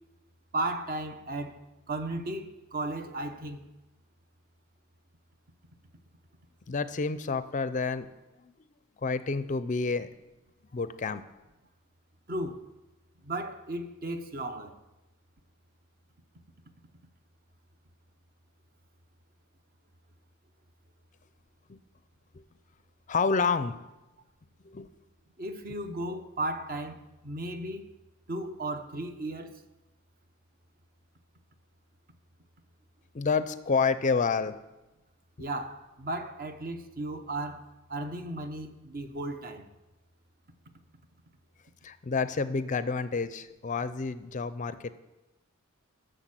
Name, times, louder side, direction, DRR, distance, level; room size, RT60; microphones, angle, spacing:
voice 1, 0.5-1.6 1.9-3.7 12.3-12.7 13.2-14.8 25.4-27.9 28.3-29.6 35.4-37.6 37.9-39.7, right 2 dB, 45° right, 0.9 m, -35 dB
voice 2, 6.7-8.1 8.4-8.5 9.0-10.1 10.7-11.2 21.7-21.8 23.1-23.8 24.6-24.9 33.1-34.6 41.8-45.0, left 4 dB, 35° left, 0.5 m, -29 dB
13.0 x 6.6 x 7.5 m
head